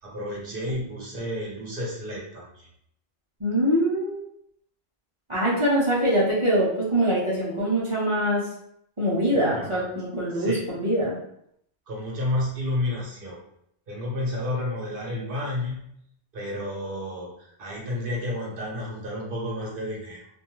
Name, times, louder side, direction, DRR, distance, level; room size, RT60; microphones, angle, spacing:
voice 1, 0.0-2.7 9.3-9.8 10.3-10.6 11.9-13.4 13.9-15.9 16.3-20.3, left 1 dB, 60° right, -3 dB, 1.0 m, -31 dB
voice 2, 3.4-4.2 5.3-8.4 9.0-11.1, right 1 dB, 35° right, -8 dB, 0.7 m, -23 dB
2.5 x 2.2 x 3.0 m, 0.73 s
omnidirectional pair, 1.0 m